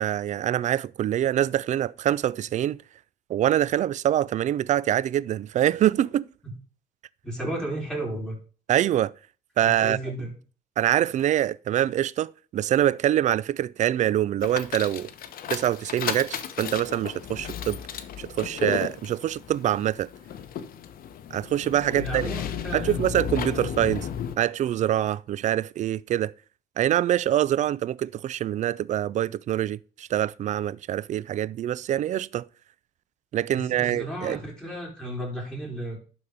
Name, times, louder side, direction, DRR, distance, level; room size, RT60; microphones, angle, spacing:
voice 1, 0.0-2.8 3.3-6.3 8.7-9.1 9.6-10.0 10.8-15.1 15.5-17.8 18.2-20.1 21.3-22.3 22.7-24.1 24.4-26.3 26.8-32.5 33.3-34.4, right 11 dB, 45° right, 0.4 m, -25 dB
voice 2, 7.2-8.4 9.6-10.3 21.9-23.1 23.5-23.7 33.5-36.0, right 1 dB, 5° left, 4.0 m, -33 dB
sound 1, 14.4-24.4, left 9 dB, 60° left, 1.0 m, -34 dB
11.5 x 4.2 x 5.0 m
cardioid pair, 110°, 17 cm